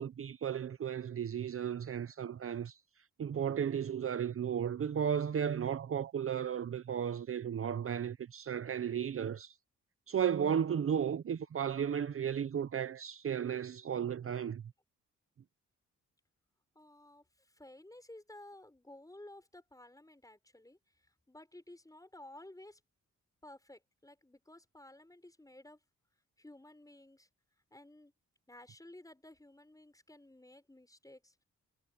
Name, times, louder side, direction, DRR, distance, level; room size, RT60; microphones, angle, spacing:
voice 1, 0.0-2.8 3.2-9.5 10.1-14.6, right 8 dB, 45° right, 0.7 m, -34 dB
voice 2, 16.8-22.8 23.4-25.8 26.4-27.3 27.7-28.1 28.5-31.4, left 1 dB, 10° left, 5.7 m, -55 dB
cardioid pair, 75°, 30 cm